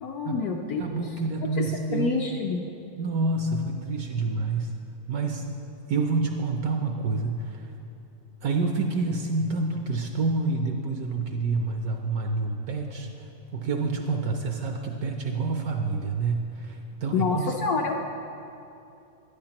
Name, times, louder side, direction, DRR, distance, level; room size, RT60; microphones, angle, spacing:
voice 1, 0.0-1.0 1.6-2.6 17.1-18.0, left 4 dB, 70° left, 1 dB, 0.9 m, -27 dB
voice 2, 0.8-2.2 3.0-4.7 5.1-5.5 5.9-7.6 8.4-13.1 13.5-17.5, right 3 dB, 70° right, 3 dB, 0.9 m, -28 dB
11.5 x 10.0 x 2.9 m, 2.8 s
omnidirectional pair, 2.0 m